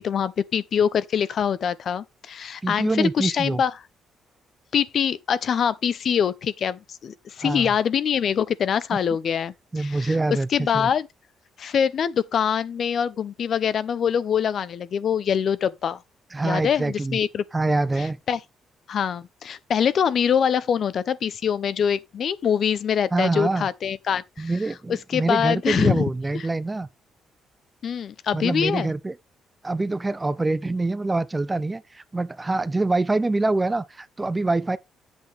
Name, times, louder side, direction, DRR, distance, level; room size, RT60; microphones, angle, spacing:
voice 1, 0.0-3.7 4.7-11.1 11.6-16.0 16.4-17.4 18.3-18.4 18.9-24.5 24.9-26.1 27.8-28.9, left 8 dB, 50° left, 0.6 m, -24 dB
voice 2, 2.6-3.6 7.4-7.7 9.7-10.9 16.3-17.2 17.5-18.2 23.1-23.7 24.4-26.9 28.3-29.1 29.6-34.8, right 2 dB, 15° right, 0.4 m, -25 dB
8.4 x 8.1 x 3.3 m
cardioid pair, 155°, 0 cm